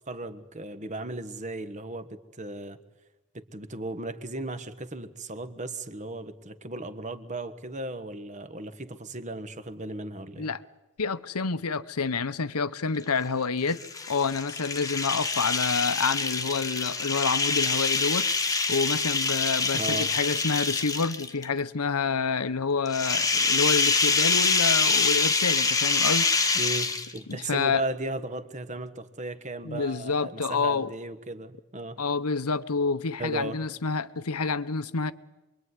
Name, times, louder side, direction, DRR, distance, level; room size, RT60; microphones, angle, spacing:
voice 1, 0.1-2.8 3.3-10.5 19.7-20.1 26.5-32.0 33.2-33.6, right 2 dB, 35° right, 1.4 m, -36 dB
voice 2, 11.0-18.3 18.7-26.3 27.3-27.8 29.6-30.9 32.0-35.1, left 4 dB, 85° left, 1.0 m, -28 dB
sound 1, 13.7-21.4 22.9-27.3, left 4 dB, 15° left, 1.4 m, -25 dB
26.5 x 23.0 x 9.7 m
head